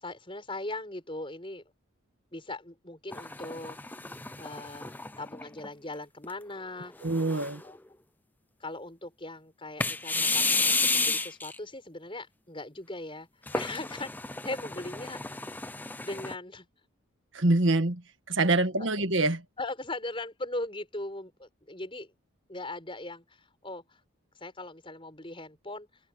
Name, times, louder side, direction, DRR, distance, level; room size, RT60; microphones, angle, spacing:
voice 1, 0.0-1.6 2.3-4.0 4.4-6.9 7.6-7.8 8.6-13.3 13.5-14.1 14.4-15.4 16.0-16.7 18.8-18.9 19.6-22.1 22.5-24.0 24.4-25.9, left 2 dB, 25° left, 5.5 m, -39 dB
sound 1, 3.1-5.7 6.2-6.3 7.0-7.7 9.8-11.6 13.5-16.3, left 3 dB, 10° left, 0.5 m, -31 dB
voice 2, 7.0-7.6 17.3-19.4, right 2 dB, 65° right, 1.7 m, -25 dB
head